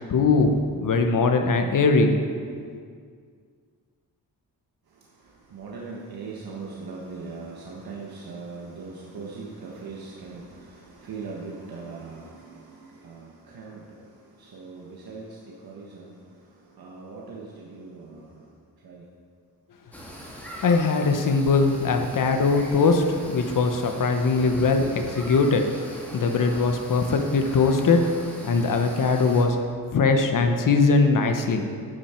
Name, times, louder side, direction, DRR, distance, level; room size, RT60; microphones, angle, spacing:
voice 1, 0.1-2.2 20.6-25.7 26.1-28.0 28.4-29.6 29.9-31.7, left 4 dB, 55° left, 5 dB, 1.0 m, -21 dB
voice 2, 5.5-13.8 14.4-16.1 16.8-18.3 18.8-19.0, right 4 dB, 70° right, -3 dB, 1.4 m, -40 dB
sound 1, 19.9-29.4, equal, 5° left, 1.7 m, -41 dB
12.0 x 9.2 x 4.4 m, 2.1 s
wide cardioid pair, 155°, 38 cm